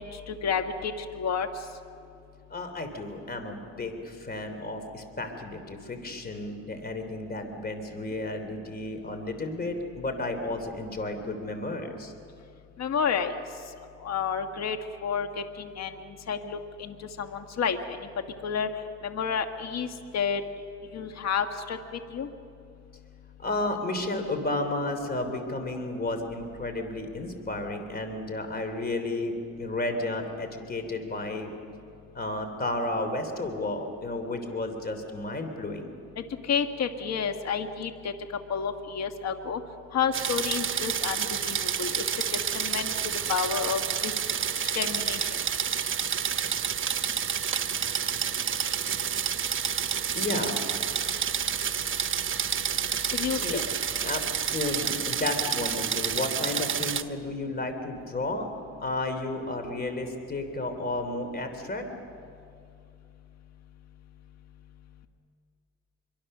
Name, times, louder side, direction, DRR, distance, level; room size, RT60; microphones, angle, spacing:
voice 1, 0.0-1.5 12.8-13.3 14.0-14.8 15.0-15.9 16.3-17.8 18.4-18.7 19.0-20.4 20.9-22.3 36.5-38.1 38.5-39.6 39.9-42.0 42.5-42.9 43.3-44.1 44.7-45.3 53.1-53.6, left 6 dB, 60° left, 7 dB, 1.6 m, -30 dB
voice 2, 2.5-12.1 23.4-31.5 32.1-35.9 50.1-50.6 53.4-53.7 54.0-58.5 58.8-61.9, left 2 dB, 30° left, 7 dB, 3.2 m, -32 dB
sound 1, 40.1-57.0, right 8 dB, 40° right, 1.0 m, -29 dB
25.5 x 24.0 x 6.7 m, 2.5 s
cardioid pair, 90°, 30 cm